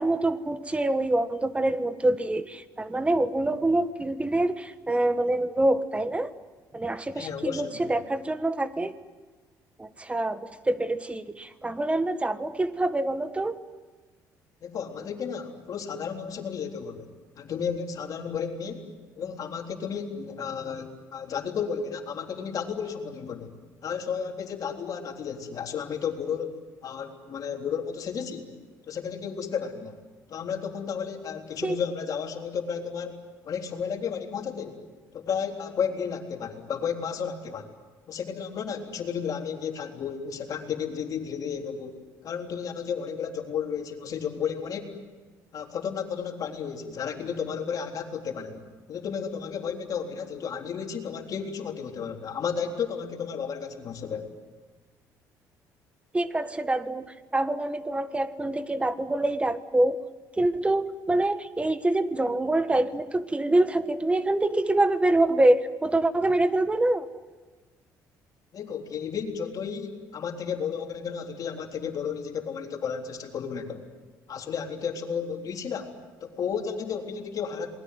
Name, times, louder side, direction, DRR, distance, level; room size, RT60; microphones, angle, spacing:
voice 1, 0.0-6.3 6.7-8.9 9.8-13.6 31.6-31.8 56.1-60.0 60.4-67.1, right 2 dB, 15° right, 11 dB, 1.5 m, -25 dB
voice 2, 7.1-7.9 14.6-17.1 17.4-18.9 19.2-23.5 23.8-26.6 26.8-28.5 28.9-30.0 30.3-33.2 33.4-34.8 35.1-37.7 38.1-45.0 45.5-54.3 68.5-73.9 74.3-77.7, left 7 dB, 55° left, 3 dB, 3.7 m, -33 dB
27.5 x 20.5 x 9.5 m, 1.3 s
cardioid pair, 90°, 7 cm